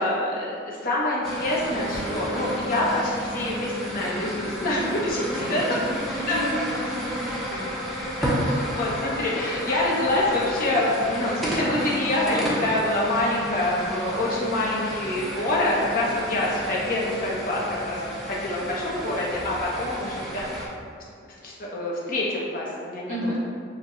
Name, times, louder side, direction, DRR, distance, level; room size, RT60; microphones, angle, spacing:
voice 1, 0.0-5.8 6.3-6.4 8.2-8.4 8.7-18.0 18.3-20.4 21.4-23.3, left 1 dB, 45° left, -5 dB, 0.8 m, -26 dB
sound 1, 1.2-20.7, equal, ahead, 0.5 m, -32 dB
sound 2, 1.9-19.4, equal, 75° right, 1.2 m, -41 dB
voice 2, 5.0-7.7 23.1-23.4, equal, 40° right, -8 dB, 1.1 m, -33 dB
Bowed string instrument, 5.1-11.0, equal, 65° left, 1.2 m, -42 dB
6.6 x 2.2 x 3.0 m, 2.3 s
head